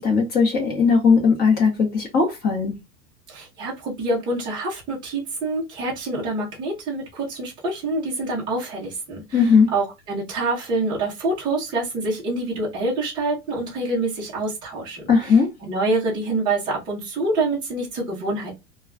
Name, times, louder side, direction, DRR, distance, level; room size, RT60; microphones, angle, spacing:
voice 1, 0.0-2.8 9.3-9.7 15.1-15.5, left 5 dB, 20° left, 0.8 m, -18 dB
voice 2, 3.3-9.4 9.7-15.3 15.6-18.5, right 2 dB, 10° right, 0.5 m, -26 dB
2.3 x 2.2 x 3.6 m
supercardioid pair, 170°, 48 cm